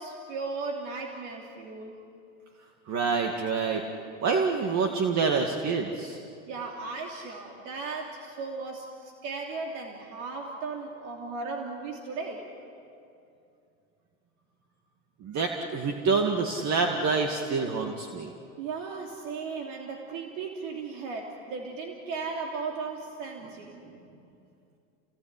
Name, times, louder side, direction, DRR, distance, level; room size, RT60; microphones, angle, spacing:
voice 1, 0.0-2.0 6.5-12.4 18.6-24.2, right 4 dB, 70° right, 0 dB, 3.3 m, -36 dB
voice 2, 2.9-3.8 4.2-6.2 15.2-18.3, right 4 dB, 45° right, 3 dB, 2.3 m, -27 dB
30.0 x 19.5 x 9.9 m, 2.5 s
supercardioid pair, 100°, 39 cm